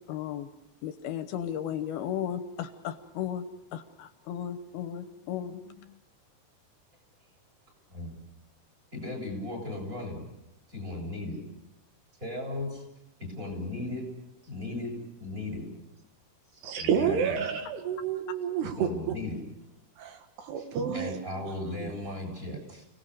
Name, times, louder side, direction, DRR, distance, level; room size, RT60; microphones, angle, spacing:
voice 1, 0.1-0.5 0.8-3.5 3.7-6.0 18.3-18.4, left 9 dB, 75° left, 9 dB, 2.8 m, -35 dB
voice 2, 8.9-10.2 10.7-11.4 12.2-12.8 13.2-14.0 14.4-14.9 15.2-15.8 16.5-17.4 18.6-19.4 20.5-20.7 20.9-22.8, left 2 dB, 20° right, 3 dB, 8.2 m, -36 dB
voice 3, 16.6-19.1 20.0-21.2 21.8-21.9, right 7 dB, 80° right, 6 dB, 3.7 m, -30 dB
30.0 x 19.0 x 6.7 m, 0.87 s
omnidirectional pair, 4.7 m